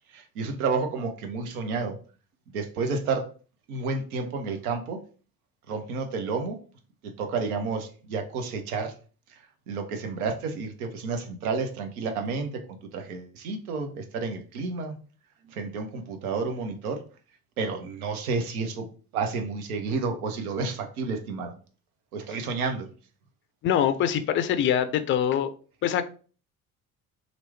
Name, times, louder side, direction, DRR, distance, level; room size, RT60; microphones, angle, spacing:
voice 1, 0.1-2.0 2.5-3.3 3.7-5.0 5.7-6.6 7.0-8.9 9.7-14.9 15.5-17.0 17.6-18.9 19.1-21.5 22.1-22.9, right 4 dB, 75° right, 0.7 m, -30 dB
voice 2, 23.6-25.5 25.8-26.0, left 9 dB, 30° left, 0.4 m, -24 dB
2.9 x 2.5 x 3.3 m
figure-of-eight pair, 50°, 45 cm